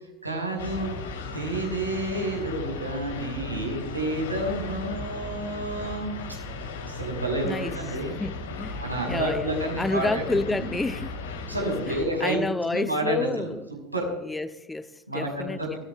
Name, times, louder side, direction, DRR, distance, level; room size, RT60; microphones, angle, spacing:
voice 1, 0.2-1.0 1.3-6.2 6.8-8.2 8.8-10.7 11.5-12.4 12.7-13.5 13.9-14.1 15.1-15.8, right 1 dB, 90° right, 5.6 m, -29 dB
sound 1, 0.6-12.0, left 3 dB, 65° left, 3.3 m, -36 dB
voice 2, 9.1-11.1 11.6-13.7 14.2-15.8, left 2 dB, 10° left, 0.7 m, -30 dB
25.5 x 15.5 x 2.4 m
figure-of-eight pair, 80°, 0 cm